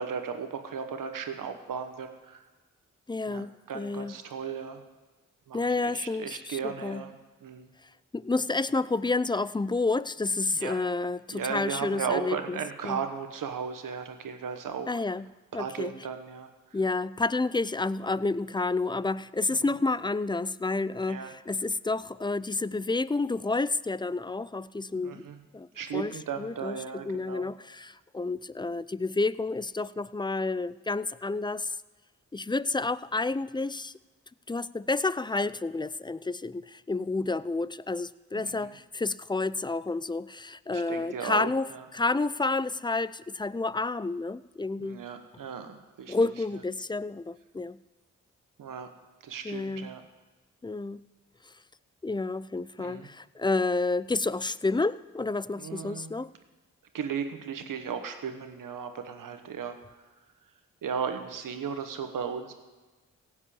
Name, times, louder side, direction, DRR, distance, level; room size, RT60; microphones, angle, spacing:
voice 1, 0.0-2.4 3.3-4.8 5.5-7.7 10.5-10.8 11.3-15.0 15.5-16.5 19.5-19.7 21.1-21.3 25.0-25.4 25.7-27.5 38.4-38.7 40.7-41.8 44.8-46.1 48.6-48.9 49.2-50.0 52.8-53.1 55.5-56.1 56.9-59.8 60.8-62.5, right 6 dB, 80° right, 7 dB, 1.3 m, -36 dB
voice 2, 3.1-4.1 5.5-7.0 8.1-12.6 12.8-13.0 14.9-15.2 15.5-15.9 16.7-25.2 25.5-25.7 25.9-26.1 26.4-26.8 27.0-31.7 32.3-33.9 34.5-41.7 41.9-45.0 46.1-47.8 49.4-49.9 50.6-51.0 52.0-56.3, left 3 dB, 15° left, 18 dB, 0.4 m, -30 dB
16.0 x 5.5 x 8.6 m, 1.3 s
supercardioid pair, 45°, 32 cm